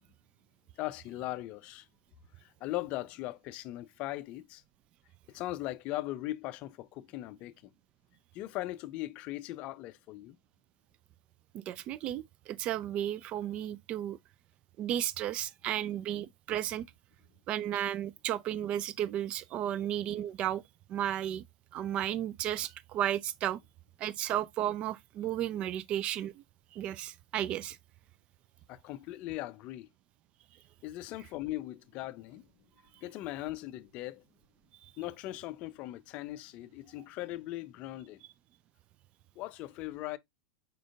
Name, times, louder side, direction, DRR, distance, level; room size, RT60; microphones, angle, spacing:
voice 1, 0.8-1.9 2.4-4.6 5.3-7.7 8.3-10.4 28.7-29.9 30.8-32.5 33.0-34.2 35.0-38.2 39.4-40.2, left 16 dB, 40° left, 0.4 m, -39 dB
voice 2, 11.5-14.2 14.8-16.9 17.5-20.6 20.9-21.4 21.7-23.6 24.0-26.4 26.7-27.8, right 11 dB, 35° right, 0.4 m, -33 dB
4.9 x 4.5 x 2.4 m
figure-of-eight pair, 95°, 3 cm